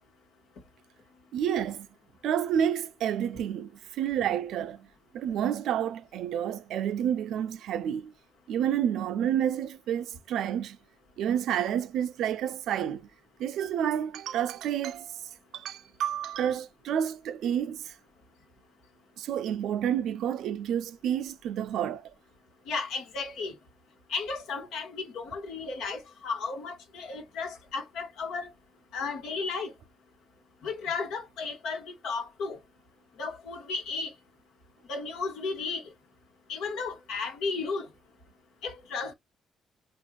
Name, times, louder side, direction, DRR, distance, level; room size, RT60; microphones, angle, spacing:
voice 1, 1.3-1.9 2.2-4.9 5.1-8.1 8.5-10.8 11.2-13.1 13.4-15.2 15.5-17.9 19.2-22.1, right 9 dB, 80° right, 0.4 m, -29 dB
voice 2, 22.7-23.6 24.1-28.5 28.9-29.7 30.6-32.6 33.2-34.1 34.9-35.9 36.5-37.9 38.6-39.1, left 4 dB, 85° left, 1.3 m, -34 dB
4.4 x 2.4 x 2.3 m
cardioid pair, 90°, 0 cm